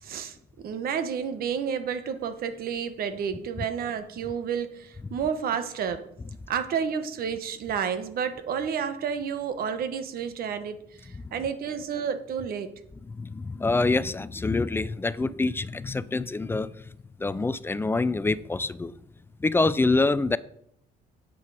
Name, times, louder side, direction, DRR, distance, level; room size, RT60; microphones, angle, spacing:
voice 1, 0.0-6.0 6.5-12.7, right 7 dB, 60° right, 1.2 m, -30 dB
voice 2, 13.1-16.7 17.2-18.9 19.4-20.4, left 3 dB, 15° left, 0.4 m, -26 dB
9.5 x 7.6 x 4.9 m
cardioid pair, 110°, 17 cm